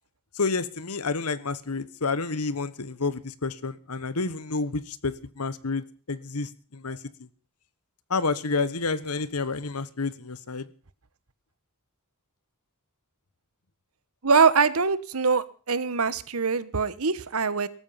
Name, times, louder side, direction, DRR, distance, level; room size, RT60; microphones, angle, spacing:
voice 1, 0.3-7.3 8.1-10.7, left 4 dB, 85° left, 16 dB, 1.3 m, -29 dB
voice 2, 14.2-17.7, right 5 dB, 70° right, 16 dB, 1.2 m, -23 dB
18.0 x 14.0 x 5.8 m, 0.40 s
head